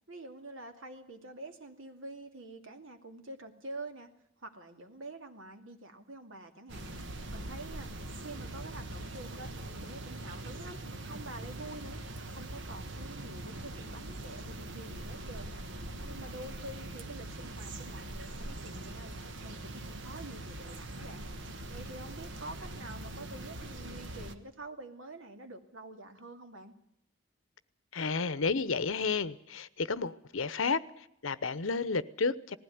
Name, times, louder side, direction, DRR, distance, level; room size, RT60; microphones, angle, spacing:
voice 1, 0.0-4.1 4.4-6.9 7.3-7.9 8.2-10.8 11.1-12.0 12.3-15.6 16.0-19.1 19.4-21.3 21.7-26.7, right 2 dB, 85° right, 2.4 m, -47 dB
sound 1, 6.7-24.4, right 1 dB, 65° right, 1.4 m, -42 dB
voice 2, 27.9-32.6, left 4 dB, 80° left, 0.9 m, -32 dB
19.5 x 16.0 x 9.5 m
head